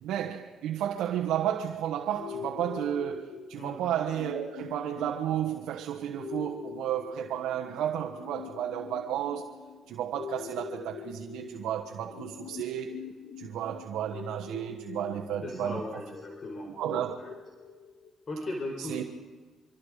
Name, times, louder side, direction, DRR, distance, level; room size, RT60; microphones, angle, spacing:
voice 1, 0.0-9.5 9.9-13.0 13.4-16.0 16.8-17.2 18.8-19.0, right 10 dB, 90° right, 1.4 m, -32 dB
sound 1, 2.1-18.1, left 7 dB, 85° left, 2.1 m, -44 dB
voice 2, 15.4-16.7 17.1-17.3 18.3-19.0, left 1 dB, 40° left, 4.3 m, -37 dB
26.0 x 25.5 x 5.0 m
cardioid pair, 90°, 0 cm